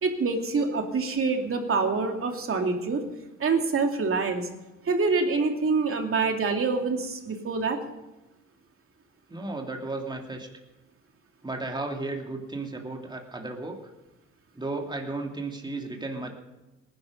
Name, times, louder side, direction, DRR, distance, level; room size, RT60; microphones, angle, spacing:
voice 1, 0.0-3.0 3.4-4.5 4.8-7.8, right 4 dB, 45° right, 3 dB, 2.6 m, -26 dB
voice 2, 9.3-10.5 11.4-13.8 14.5-16.3, right 2 dB, 15° right, 1 dB, 2.7 m, -34 dB
19.0 x 11.0 x 5.2 m, 1.1 s
cardioid pair, 90°, 30 cm